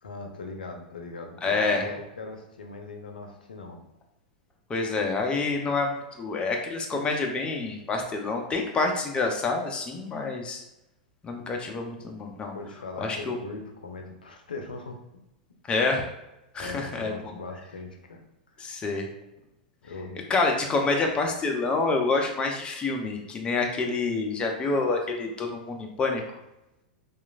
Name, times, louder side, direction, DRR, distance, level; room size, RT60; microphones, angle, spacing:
voice 1, 0.0-3.8 12.5-15.0 16.6-18.2 18.7-18.8 19.8-20.2, left 3 dB, 90° left, 3 dB, 0.5 m, -40 dB
voice 2, 1.4-1.9 4.7-10.6 11.2-12.5 13.0-13.4 15.7-16.1 16.5-17.1 18.6-19.1 20.3-26.2, left 3 dB, 20° left, 2 dB, 0.5 m, -27 dB
2.9 x 2.4 x 2.4 m, 0.91 s
hypercardioid pair, 105°, 5 cm